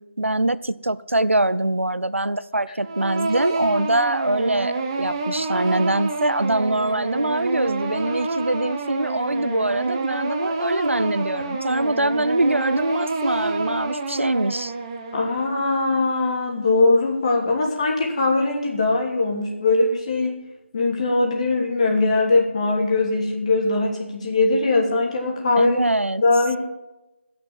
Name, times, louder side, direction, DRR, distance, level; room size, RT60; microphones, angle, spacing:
voice 1, 0.2-14.7 25.6-26.2, right 1 dB, 90° right, 16 dB, 0.7 m, -23 dB
sound 1, 2.8-15.7, right 3 dB, 20° right, 1.1 m, -28 dB
voice 2, 15.1-20.4 20.7-25.8 26.2-26.6, left 3 dB, 30° left, 0 dB, 2.9 m, -21 dB
16.5 x 6.1 x 8.9 m, 0.96 s
figure-of-eight pair, 160°, 7 cm